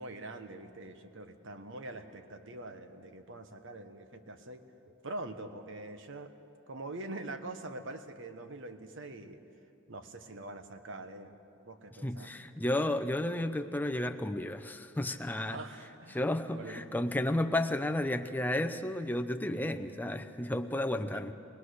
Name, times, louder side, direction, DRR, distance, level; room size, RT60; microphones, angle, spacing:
voice 1, 0.0-4.6 5.0-6.3 6.7-9.4 9.9-11.3 11.6-12.3 15.5-16.2 16.5-16.8 17.2-17.4 18.0-18.1 21.0-21.3, right 2 dB, 60° right, 8 dB, 1.2 m, -44 dB
voice 2, 12.0-15.6 16.1-21.3, left 1 dB, 10° left, 7 dB, 0.6 m, -32 dB
21.0 x 20.5 x 6.5 m, 2.8 s
head